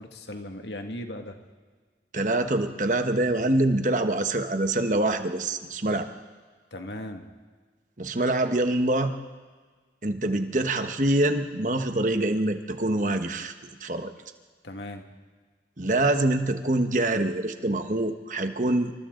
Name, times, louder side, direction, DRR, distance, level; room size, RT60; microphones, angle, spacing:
voice 1, 0.0-1.4 6.7-7.3 14.6-15.0, left 1 dB, 75° left, 4 dB, 2.1 m, -37 dB
voice 2, 2.1-6.1 8.0-9.1 10.0-13.5 13.8-14.1 15.8-18.9, right 1 dB, 45° right, 7 dB, 1.3 m, -25 dB
27.5 x 25.5 x 3.9 m, 1.5 s
head